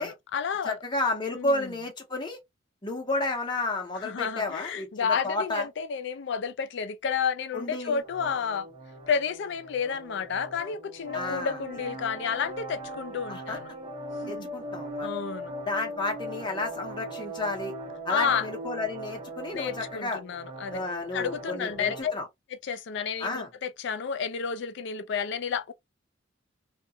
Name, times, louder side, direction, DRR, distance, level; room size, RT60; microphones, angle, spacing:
voice 1, 0.0-0.8 1.3-1.7 4.0-8.7 9.1-13.7 14.2-14.5 15.0-15.5 18.1-18.5 19.5-20.8 21.1-22.1 22.6-25.7, left 6 dB, 65° left, 0.4 m, -31 dB
voice 2, 0.6-2.4 2.8-5.7 7.5-8.0 11.1-11.6 13.3-13.6 14.3-15.1 15.7-17.7 18.0-20.2 20.7-22.2 23.2-23.5, left 2 dB, 25° left, 0.8 m, -31 dB
sound 1, 8.0-22.0, right 1 dB, 30° right, 0.9 m, -40 dB
2.3 x 2.2 x 2.6 m
head